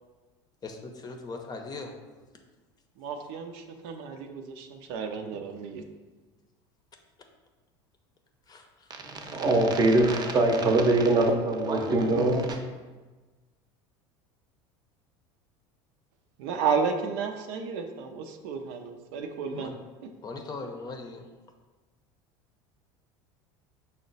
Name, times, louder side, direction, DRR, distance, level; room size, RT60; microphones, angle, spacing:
voice 1, 0.6-1.9 8.5-8.9 19.5-19.8 20.2-21.3, left 3 dB, 30° left, 4 dB, 0.6 m, -39 dB
voice 2, 3.0-5.8 16.4-19.7, right 5 dB, 75° right, 5 dB, 0.5 m, -32 dB
voice 3, 8.9-12.6, right 2 dB, 30° right, 4 dB, 0.7 m, -23 dB
5.6 x 2.1 x 3.9 m, 1.3 s
supercardioid pair, 95°, 13 cm